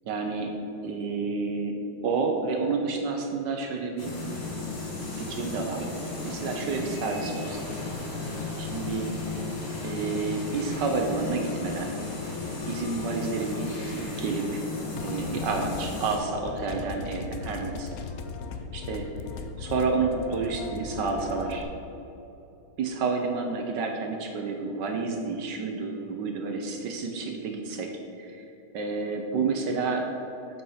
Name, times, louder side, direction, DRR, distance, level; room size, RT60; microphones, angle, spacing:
voice 1, 0.0-0.5 0.8-1.8 2.0-4.1 5.1-5.9 6.2-7.7 8.6-9.1 9.8-11.9 12.7-14.6 15.0-17.9 18.7-19.1 19.6-21.7 22.8-27.9 28.2-28.5 28.7-30.1, right 4 dB, 65° right, 3 dB, 1.2 m, -30 dB
sound 1, 4.0-16.2, left 3 dB, 55° left, 2.2 m, -34 dB
sound 2, 15.0-21.6, left 5 dB, 85° left, 0.7 m, -38 dB
8.1 x 5.6 x 5.6 m, 3.0 s
omnidirectional pair, 2.3 m